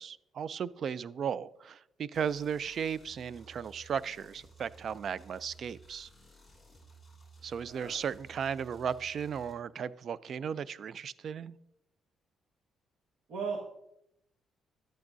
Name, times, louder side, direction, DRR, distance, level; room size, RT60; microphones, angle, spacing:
voice 1, 0.0-6.1 7.4-11.6, right 7 dB, 55° right, 18 dB, 0.3 m, -36 dB
sound 1, 2.1-9.5, right 3 dB, ahead, 2.7 m, -56 dB
voice 2, 13.3-13.7, right 5 dB, 70° right, -2 dB, 1.6 m, -36 dB
11.5 x 8.6 x 2.7 m, 0.80 s
cardioid pair, 105°, 0 cm